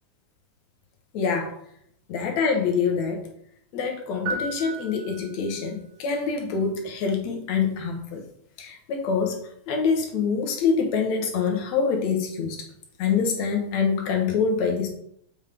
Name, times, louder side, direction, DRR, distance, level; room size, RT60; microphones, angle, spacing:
voice 1, 1.1-1.5 2.1-3.3 3.7-8.2 8.6-9.4 9.7-12.6 13.0-14.9, left 5 dB, 65° left, 2 dB, 2.3 m, -25 dB
sound 1, 4.3-5.7, right 3 dB, 60° right, 2.2 m, -34 dB
7.2 x 5.2 x 3.5 m, 0.68 s
omnidirectional pair, 3.5 m